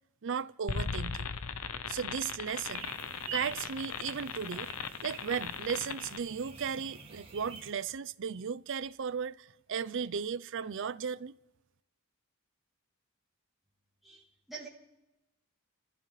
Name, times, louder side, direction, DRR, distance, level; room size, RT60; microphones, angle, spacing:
voice 1, 0.2-1.3 1.9-2.9 3.3-4.7 5.0-11.3, right 7 dB, 60° right, 0.5 m, -36 dB
sound 1, 0.7-6.2, left 6 dB, 80° left, 0.7 m, -38 dB
sound 2, 2.7-7.7, right 4 dB, 25° right, 2.1 m, -47 dB
voice 2, 14.0-14.7, right 4 dB, ahead, 2.7 m, -46 dB
29.5 x 15.0 x 3.2 m
head